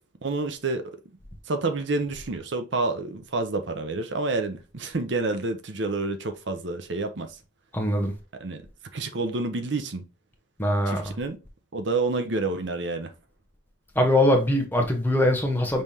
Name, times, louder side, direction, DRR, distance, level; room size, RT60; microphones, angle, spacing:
voice 1, 0.2-1.0 1.5-7.3 8.4-8.6 8.9-10.0 10.9-11.4 11.7-13.1, right 3 dB, 65° right, 0.7 m, -28 dB
voice 2, 7.7-8.1 10.6-11.0 13.9-15.8, left 1 dB, 10° left, 1.0 m, -22 dB
5.5 x 3.4 x 2.8 m
head